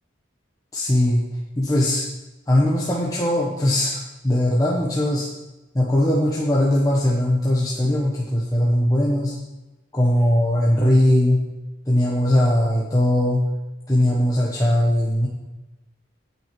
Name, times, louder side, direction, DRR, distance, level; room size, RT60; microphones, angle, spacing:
voice 1, 0.7-1.2 1.6-2.1 2.5-4.0 4.2-5.3 5.7-9.3 9.9-11.4 11.9-13.4 13.9-15.3, left 1 dB, 15° left, -4 dB, 1.1 m, -19 dB
9.0 x 6.1 x 7.7 m, 1.1 s
head